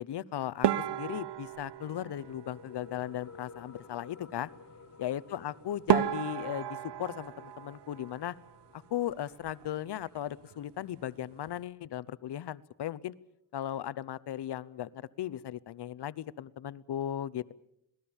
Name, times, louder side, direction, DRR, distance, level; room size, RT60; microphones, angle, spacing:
voice 1, 0.0-4.5 5.0-8.3 8.7-13.1 13.5-17.5, left 11 dB, 70° left, 18 dB, 0.8 m, -37 dB
sound 1, 0.6-3.1 5.4-5.5 5.9-8.7 8.9-9.7 10.0-10.2 10.5-10.6 11.2-11.6, right 10 dB, 75° right, 1.0 m, -33 dB
sound 2, 1.3-12.3, left 5 dB, 40° left, 3.0 m, -55 dB
27.0 x 19.5 x 7.2 m, 0.81 s
wide cardioid pair, 120°, 42 cm